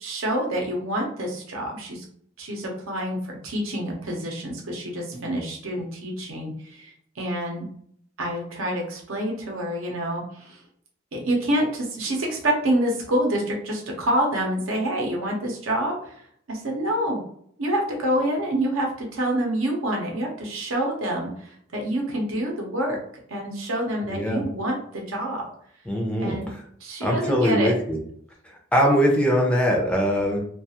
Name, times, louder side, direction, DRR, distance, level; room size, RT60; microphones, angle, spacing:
voice 1, 0.0-2.0 2.4-7.7 8.2-10.6 11.1-16.2 16.5-17.2 17.6-23.0 23.3-25.5 26.2-26.5 26.8-27.7, right 1 dB, 80° right, 0 dB, 0.7 m, -27 dB
voice 2, 24.1-24.4 25.9-26.6 27.0-28.0 28.7-30.4, equal, 5° left, 0 dB, 0.4 m, -22 dB
2.4 x 2.3 x 2.8 m, 0.65 s
head